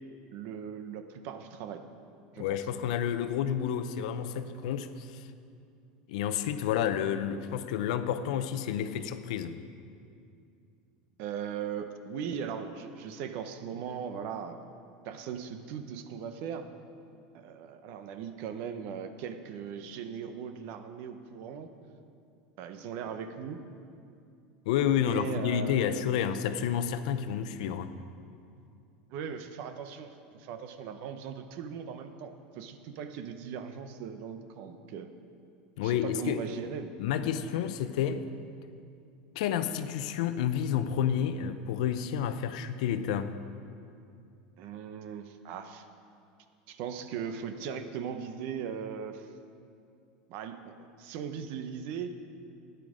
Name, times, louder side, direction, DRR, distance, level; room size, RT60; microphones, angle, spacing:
voice 1, 0.3-1.9 2.3-2.6 11.2-14.6 15.0-16.7 17.3-22.0 22.6-23.6 25.0-26.3 29.1-35.1 35.8-36.9 44.6-45.9 46.7-49.3 50.3-52.2, right 7 dB, 55° right, 9 dB, 0.8 m, -39 dB
voice 2, 2.4-5.3 6.1-9.6 24.7-27.9 35.8-36.4 37.0-38.3 39.4-43.4, left 9 dB, 75° left, 10 dB, 0.6 m, -30 dB
12.5 x 9.3 x 5.0 m, 2.5 s
supercardioid pair, 140°, 4 cm